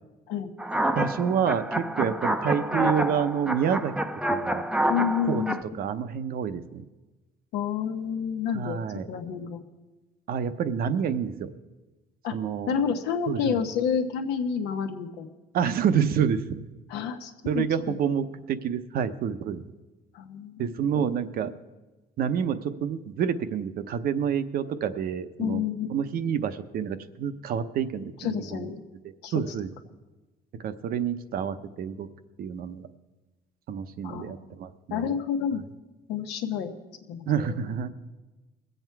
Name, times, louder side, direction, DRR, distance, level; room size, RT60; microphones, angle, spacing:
sound 1, 0.6-5.6, right 1 dB, 5° right, 0.6 m, -28 dB
voice 1, 0.9-3.9 4.3-4.6 5.3-5.4 5.8-6.8 8.5-9.1 10.3-11.5 12.3-12.7 13.3-13.6 15.5-16.7 17.4-19.6 20.6-21.5 22.2-25.6 25.9-28.7 29.3-29.7 30.6-32.1 32.4-32.9 33.7-35.1 37.3-37.9, right 8 dB, 60° right, 10 dB, 0.8 m, -28 dB
voice 2, 4.9-5.6 7.5-9.6 12.2-12.4 12.7-15.3 16.9-18.0 20.1-21.1 25.4-25.9 28.2-28.8 29.2-29.4 34.0-34.4 34.9-35.6 36.1-36.7 37.1-37.7, left 7 dB, 90° left, 5 dB, 1.2 m, -29 dB
21.0 x 7.9 x 4.6 m, 1.2 s
cardioid pair, 110°, 17 cm